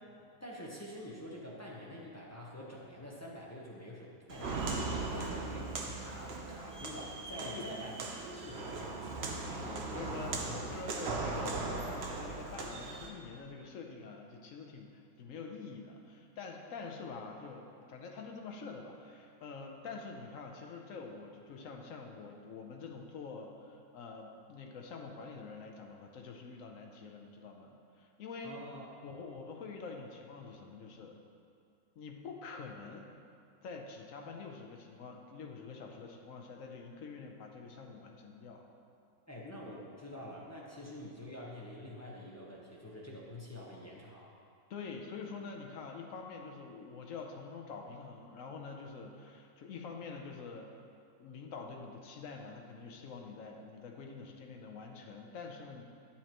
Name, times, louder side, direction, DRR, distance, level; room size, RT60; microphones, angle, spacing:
voice 1, 0.4-8.0 8.3-9.2 10.5-10.7 28.4-28.9 39.3-44.3, left 1 dB, 15° left, -5 dB, 0.5 m, -46 dB
Walk footsteps, 4.3-13.1, right 3 dB, 60° right, 0.6 m, -38 dB
voice 2, 9.5-28.6 29.0-31.2 32.0-33.1 33.6-38.7 44.7-50.7 51.2-55.8, left 4 dB, 60° left, 2 dB, 0.9 m, -46 dB
10.0 x 7.3 x 3.0 m, 2.4 s
omnidirectional pair, 2.0 m